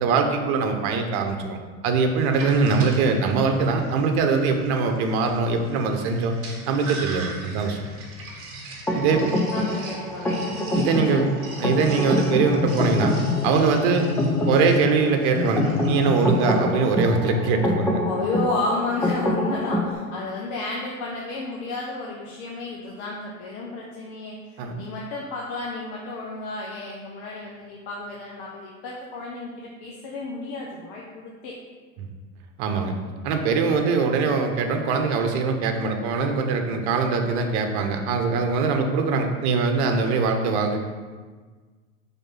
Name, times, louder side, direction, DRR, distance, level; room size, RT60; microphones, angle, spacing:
voice 1, 0.0-1.6 1.8-6.3 6.7-7.8 8.9-9.2 10.7-11.3 11.6-13.1 13.4-14.1 14.4-18.0 24.6-24.8 32.0-32.1 32.6-32.9 33.2-40.8, right 4 dB, 50° right, 4 dB, 1.1 m, -22 dB
Sink (filling or washing), 2.2-17.2, right 2 dB, 30° right, 1.6 m, -41 dB
sound 1, 8.9-19.9, left 2 dB, 5° left, 0.3 m, -26 dB
voice 2, 9.1-10.5 10.9-11.3 18.0-31.6, left 2 dB, 45° left, -3 dB, 1.1 m, -32 dB
5.5 x 4.1 x 5.7 m, 1.5 s
hypercardioid pair, 100°, 43 cm